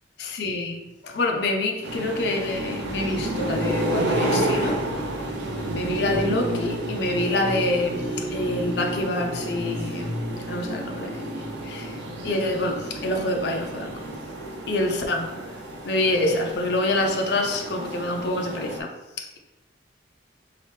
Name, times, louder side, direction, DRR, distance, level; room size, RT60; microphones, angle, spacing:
voice 1, 0.2-4.9 5.7-11.3 11.6-14.1 14.7-15.3 15.8-18.9 19.2-19.4, left 2 dB, 60° left, 2 dB, 0.5 m, -26 dB
sound 1, 1.8-18.8, right 1 dB, 70° right, 0.6 m, -30 dB
3.2 x 2.9 x 3.2 m, 1.0 s
head